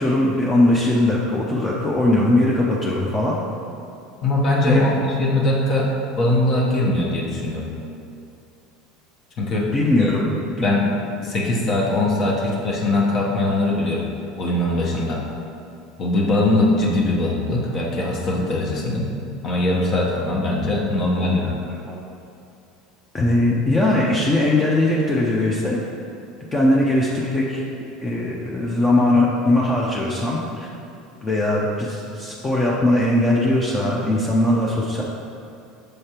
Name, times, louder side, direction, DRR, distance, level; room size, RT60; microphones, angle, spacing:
voice 1, 0.0-3.4 4.6-4.9 9.7-10.2 10.6-10.7 21.9-22.0 23.1-25.8 26.5-27.6 28.0-30.7 31.2-35.0, left 1 dB, 20° left, -4 dB, 0.7 m, -20 dB
voice 2, 4.2-7.7 9.4-9.7 10.0-10.1 10.6-10.8 11.2-14.1 14.4-15.2 16.0-19.1 19.4-21.5, left 2 dB, 45° left, -3 dB, 1.1 m, -21 dB
6.6 x 3.2 x 4.4 m, 2.5 s
supercardioid pair, 95°, 0 cm